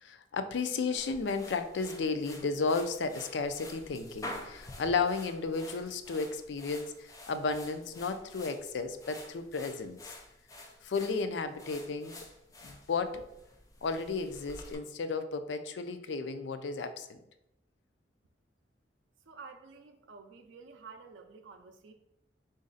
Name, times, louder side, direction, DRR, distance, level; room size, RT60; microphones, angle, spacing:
voice 1, 0.0-10.1 10.8-12.2 12.6-13.2 13.8-17.2, left 4 dB, 75° left, 9 dB, 0.4 m, -33 dB
sound 1, 1.0-14.7, left 1 dB, 20° left, 0.5 m, -49 dB
voice 2, 19.3-21.9, right 5 dB, 90° right, 5 dB, 0.5 m, -50 dB
4.0 x 2.5 x 3.9 m, 0.83 s
head